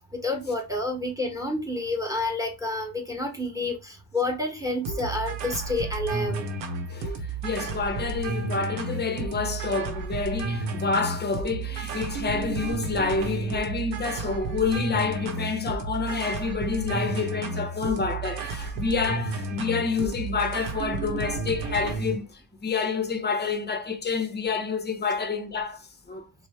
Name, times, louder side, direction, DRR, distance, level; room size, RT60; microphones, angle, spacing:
voice 1, 0.0-6.4, left 2 dB, 10° right, 1.1 m, -29 dB
sound 1, 4.9-22.2, right 3 dB, 75° right, 0.8 m, -32 dB
voice 2, 6.9-26.3, left 4 dB, 25° left, 0.6 m, -28 dB
3.1 x 2.0 x 3.2 m
supercardioid pair, 65°, 45 cm